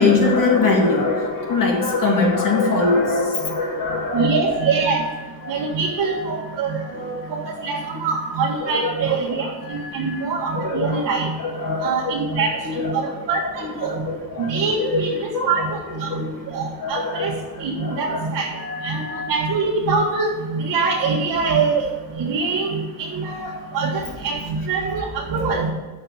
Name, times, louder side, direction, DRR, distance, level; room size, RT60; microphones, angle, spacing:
voice 1, 0.0-4.4 5.4-5.5 6.0-6.2 6.8-7.5 7.9-8.0 8.6-10.3 10.5-15.7 16.0-17.3 17.6-18.2 18.5-19.3 24.1-24.2, left 3 dB, 60° left, 1 dB, 2.1 m, -24 dB
voice 2, 4.1-5.0 5.5-11.3 11.6-14.0 14.4-16.2 16.5-17.3 17.6-18.5 18.8-21.9 22.1-25.7, right 4 dB, 75° right, -5 dB, 1.7 m, -24 dB
6.8 x 5.6 x 7.3 m, 1.2 s
cardioid pair, 110°, 37 cm